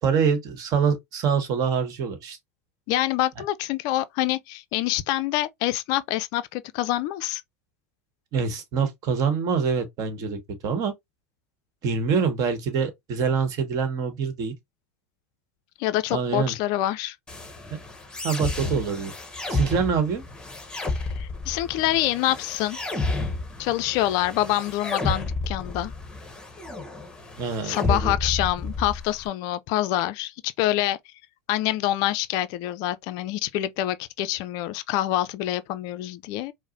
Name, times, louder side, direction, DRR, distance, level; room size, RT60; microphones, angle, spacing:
voice 1, 0.0-2.4 8.3-10.9 11.8-14.5 16.1-16.5 17.7-17.8 18.2-19.1 19.5-20.2 27.4-28.1, right 6 dB, 45° right, 1.1 m, -25 dB
voice 2, 2.9-7.4 15.8-17.2 20.9-22.8 23.6-25.9 27.6-31.0 31.5-36.5, left 14 dB, 50° left, 0.3 m, -26 dB
sound 1, 17.3-29.3, left 3 dB, 10° left, 1.0 m, -31 dB
4.6 x 2.0 x 2.6 m
hypercardioid pair, 80°, 8 cm